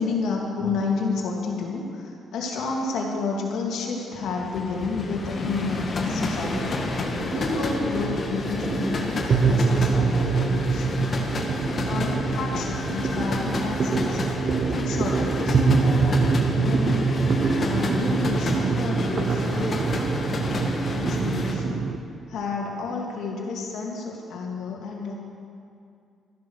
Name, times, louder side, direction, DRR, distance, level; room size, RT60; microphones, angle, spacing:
voice 1, 0.0-6.8 7.2-11.1 11.7-14.2 14.7-16.1 16.4-17.1 17.6-19.8 20.9-21.8 22.3-25.1, left 4 dB, 80° left, -1 dB, 2.7 m, -30 dB
sound 1, 4.1-21.5, left 3 dB, 45° left, 1.8 m, -30 dB
sound 2, 5.2-22.0, right 4 dB, 50° right, 0.9 m, -25 dB
14.0 x 11.0 x 6.6 m, 2.4 s
cardioid pair, 90°, 0 cm